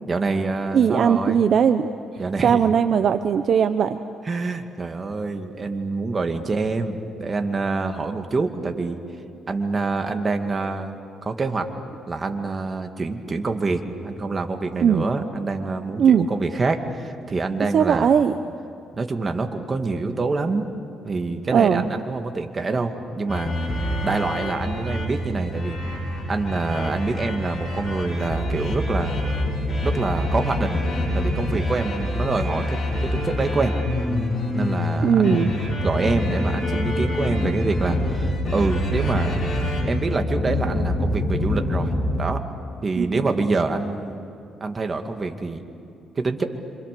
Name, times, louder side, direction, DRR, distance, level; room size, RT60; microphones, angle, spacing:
voice 1, 0.1-1.5 2.2-2.6 4.2-9.0 9.5-11.7 12.1-18.1 18.9-20.7 21.0-23.5 24.0-25.8 26.3-29.2 29.8-30.8 31.1-33.7 34.5-39.4 39.9-41.9 42.2-42.4 42.8-44.3 44.6-45.6 46.2-46.4, right 3 dB, 35° right, 5 dB, 2.3 m, -26 dB
voice 2, 0.7-1.9 2.4-4.0 14.8-15.0 16.0-16.3 17.7-18.3 21.5-21.8 35.0-35.5 43.0-43.3, right 7 dB, 60° right, 10 dB, 0.8 m, -18 dB
sound 1, 23.3-42.2, left 1 dB, 35° left, 7.8 m, -25 dB
27.0 x 26.0 x 6.9 m, 2.8 s
cardioid pair, 90°, 0 cm